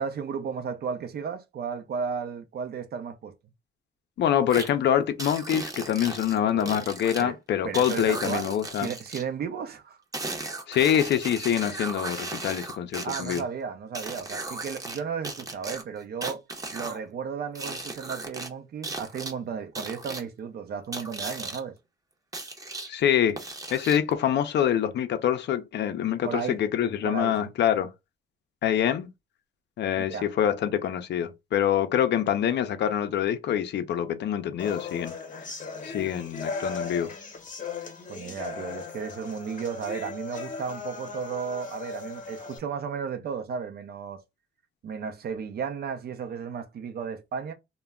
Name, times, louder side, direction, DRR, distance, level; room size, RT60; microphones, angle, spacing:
voice 1, 0.0-3.3 6.5-6.7 7.2-7.4 7.6-10.0 13.0-16.4 16.7-21.7 26.2-26.6 27.0-27.5 30.0-30.3 38.1-44.2 44.8-47.5, right 6 dB, 55° right, 0.6 m, -34 dB
voice 2, 4.2-8.9 10.7-13.4 22.9-23.4 23.7-27.9 28.6-29.1 29.8-35.1 35.8-37.1, left 10 dB, 60° left, 0.5 m, -25 dB
sound 1, 4.5-4.7 5.2-7.2 7.7-9.2 10.1-13.4 13.9-15.0 15.2-17.0 17.5-18.5 18.8-19.3 19.7-20.2 20.9-21.6 22.3-22.9 23.4-24.1, right 2 dB, 15° right, 0.7 m, -36 dB
sound 2, 34.6-42.6, left 4 dB, 40° left, 0.9 m, -37 dB
2.2 x 2.1 x 3.4 m
cardioid pair, 90°, 20 cm